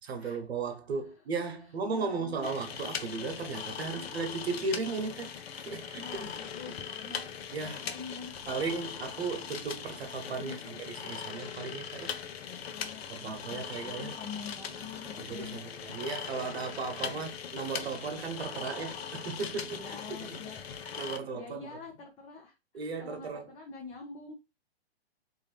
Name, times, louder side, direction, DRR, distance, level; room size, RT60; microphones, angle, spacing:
voice 1, 0.1-5.3 5.6-6.3 7.5-7.9 8.5-12.1 13.1-14.2 15.3-20.4 21.0-21.7 22.7-23.4, right 4 dB, 75° right, 1.1 m, -36 dB
voice 2, 1.9-2.5 3.7-4.1 6.0-7.3 7.6-8.4 10.4-10.8 12.4-15.7 17.0-17.3 19.7-20.6 21.3-24.3, left 5 dB, 20° left, 0.6 m, -46 dB
sound 1, 2.4-21.2, left 7 dB, 70° left, 0.8 m, -40 dB
4.0 x 2.8 x 3.3 m
hypercardioid pair, 135°, 32 cm